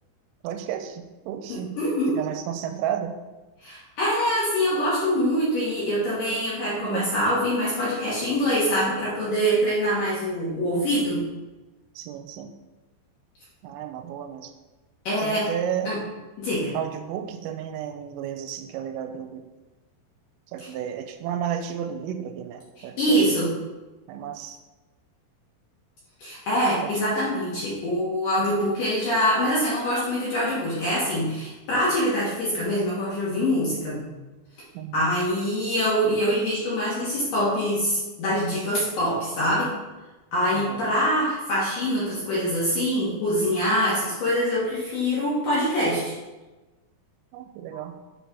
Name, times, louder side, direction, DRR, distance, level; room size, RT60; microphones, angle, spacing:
voice 1, 0.4-1.8 2.1-3.1 6.8-7.1 10.5-10.9 12.0-12.5 13.6-14.5 15.2-16.0 16.7-19.5 20.5-23.4 24.1-24.6 26.8-27.0 34.7-35.0 40.5-40.9 47.3-47.9, right 9 dB, 85° right, 7 dB, 3.2 m, -32 dB
voice 2, 1.5-2.2 3.6-11.2 15.0-15.5 15.8-16.0 16.4-16.7 23.0-23.5 26.2-34.0 34.9-39.7 40.3-46.1 47.7-47.8, equal, 60° left, -8 dB, 2.3 m, -24 dB
8.0 x 4.2 x 4.6 m, 1.2 s
omnidirectional pair, 5.8 m